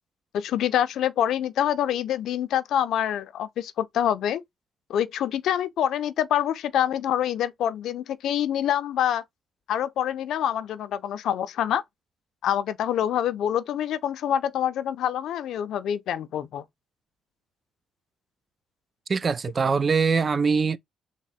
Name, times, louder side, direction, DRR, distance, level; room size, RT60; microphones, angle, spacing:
voice 1, 0.3-4.4 4.9-9.2 9.7-11.8 12.4-16.6, left 10 dB, 75° left, 0.4 m, -26 dB
voice 2, 19.1-20.8, right 5 dB, 35° right, 0.3 m, -22 dB
3.6 x 2.1 x 4.0 m
cardioid pair, 90°, 0 cm